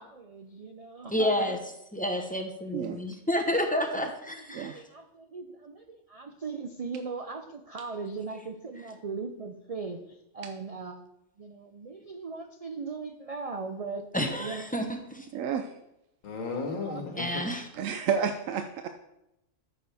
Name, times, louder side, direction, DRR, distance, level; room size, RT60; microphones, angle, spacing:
voice 1, 0.0-1.6 4.3-11.1 11.4-14.7 16.8-17.0 17.3-17.4, right 4 dB, 45° right, 5 dB, 0.5 m, -39 dB
voice 2, 1.1-1.6 1.9-4.8 14.1-15.3 17.2-17.6, left 1 dB, 5° left, 3 dB, 0.9 m, -30 dB
voice 3, 15.3-15.7 17.8-18.9, right 7 dB, 80° right, 7 dB, 1.0 m, -30 dB
voice 4, 16.2-17.4, left 4 dB, 80° left, 2 dB, 1.7 m, -34 dB
13.0 x 7.1 x 3.5 m, 0.86 s
omnidirectional pair, 1.4 m